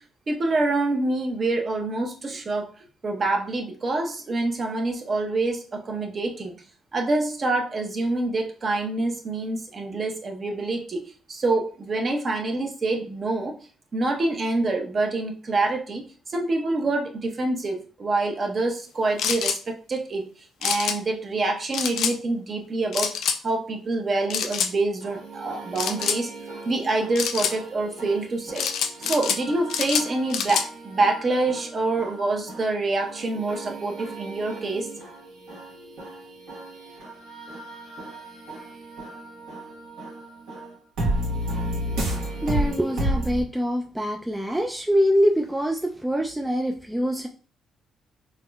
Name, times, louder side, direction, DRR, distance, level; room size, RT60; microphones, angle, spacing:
voice 1, 0.3-2.7 3.0-6.5 6.9-13.5 13.9-20.3 20.6-23.1 23.4-26.3 26.6-28.6 29.0-34.9, right 2 dB, 40° right, 2 dB, 0.9 m, -26 dB
sound 1, 19.2-19.6 20.6-21.0 21.7-22.1 22.9-23.4 24.3-24.7 25.7-26.2 27.1-27.5 28.6-29.4 29.7-30.7, left 7 dB, 80° left, 0.4 m, -26 dB
sound 2, 25.0-43.4, right 1 dB, 90° right, 1.4 m, -33 dB
voice 2, 42.4-47.3, equal, 10° right, 2 dB, 0.3 m, -24 dB
3.6 x 3.0 x 2.3 m, 0.39 s
cardioid pair, 90°, 0 cm